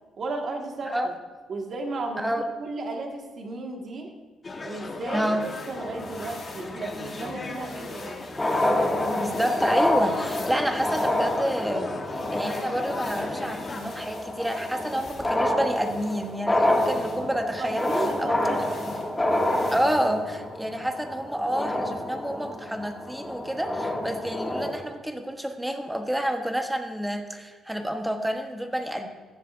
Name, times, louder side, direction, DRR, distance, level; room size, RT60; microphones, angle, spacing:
voice 1, 0.2-1.1 1.5-4.1 4.6-5.3 5.7-8.2 17.1-18.6 19.5-19.7, right 3 dB, 55° right, 2 dB, 1.8 m, -34 dB
sound 1, 4.4-13.8, left 3 dB, 30° left, 1.3 m, -38 dB
sound 2, 5.4-20.2, left 3 dB, 50° left, 3.2 m, -47 dB
sound 3, 5.8-6.8 8.0-8.1 8.3-24.8, left 1 dB, 15° left, 2.1 m, -28 dB
voice 2, 9.2-18.3 19.7-29.1, equal, 5° right, 5 dB, 1.2 m, -29 dB
15.0 x 10.5 x 2.6 m, 1.4 s
cardioid pair, 90°, 0 cm